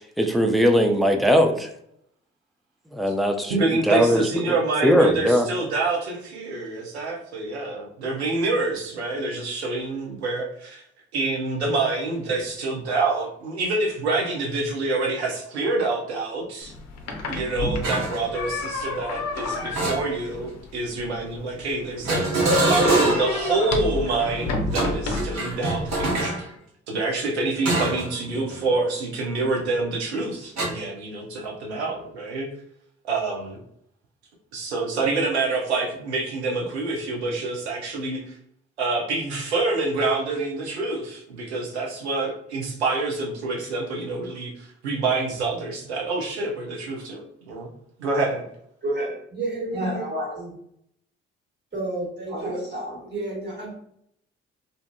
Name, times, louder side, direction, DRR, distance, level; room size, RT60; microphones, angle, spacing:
voice 1, 0.2-1.5 3.0-3.5 3.9-4.2 4.8-5.5, equal, ahead, 4 dB, 0.3 m, -19 dB
voice 2, 3.5-10.8 11.1-16.7 17.3-26.5 26.9-32.5 33.1-33.6 34.5-38.4 38.8-47.7 48.0-48.4, right 3 dB, 90° right, 0 dB, 0.5 m, -27 dB
sound 1, 16.6-26.2, left 3 dB, 55° left, 0.6 m, -31 dB
sound 2, 17.8-18.2 19.7-20.5 22.0-23.4 24.6-26.4 27.6-28.1 28.5-28.7 30.6-30.7, right 2 dB, 55° right, 0.9 m, -23 dB
voice 3, 48.8-50.5 51.7-53.8, right 1 dB, 35° right, -3 dB, 1.1 m, -30 dB
2.6 x 2.4 x 2.2 m, 0.70 s
figure-of-eight pair, 40°, 32 cm